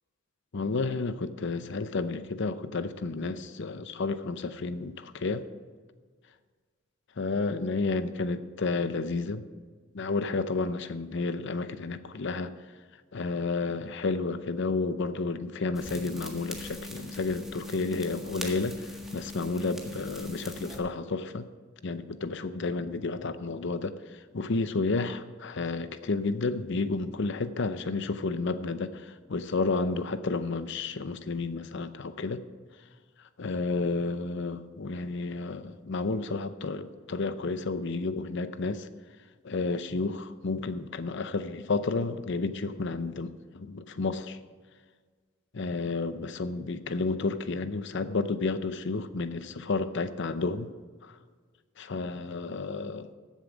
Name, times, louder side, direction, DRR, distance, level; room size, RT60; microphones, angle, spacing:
voice 1, 0.5-5.5 7.2-9.5 9.9-12.5 13.1-21.5 21.8-32.4 33.4-38.9 39.4-44.4 45.6-50.7 51.0-51.2 51.8-53.1, left 3 dB, 65° left, 12 dB, 0.7 m, -31 dB
sound 1, 15.7-20.8, left 2 dB, ahead, 1.6 m, -41 dB
15.0 x 7.3 x 5.1 m, 1.5 s
head